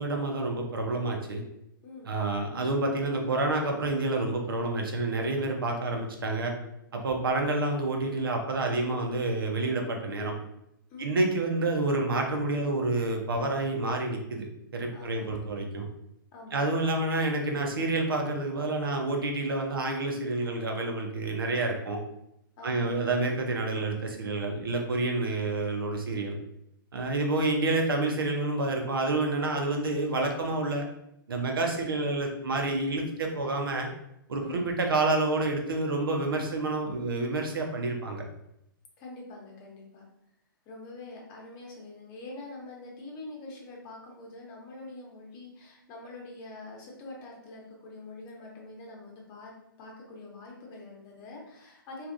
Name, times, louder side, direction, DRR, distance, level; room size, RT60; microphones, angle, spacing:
voice 1, 0.0-1.4 2.1-6.5 6.9-10.3 11.0-14.5 14.7-15.9 16.5-22.0 22.6-26.3 26.9-30.8 31.3-33.9 34.3-38.2, right 2 dB, 75° right, 2 dB, 0.7 m, -28 dB
voice 2, 1.8-2.2 10.9-11.2 14.9-15.5 16.3-16.7 22.6-22.9 34.4-34.7 39.0-40.0 40.6-49.5 49.8-52.1, left 2 dB, 30° left, -2 dB, 1.0 m, -45 dB
3.3 x 2.5 x 2.6 m, 0.80 s
hypercardioid pair, 120°, 12 cm